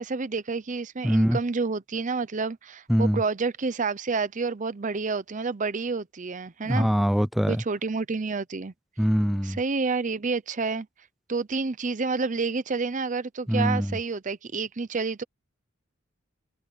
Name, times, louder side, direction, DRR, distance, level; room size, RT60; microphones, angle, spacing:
voice 1, 0.0-6.9 7.5-8.7 9.4-10.9 11.3-15.2, right 4 dB, 40° right, 0.7 m, -29 dB
voice 2, 1.0-1.4 2.9-3.2 6.6-7.6 9.0-9.6 13.5-14.0, equal, ahead, 0.4 m, -23 dB
head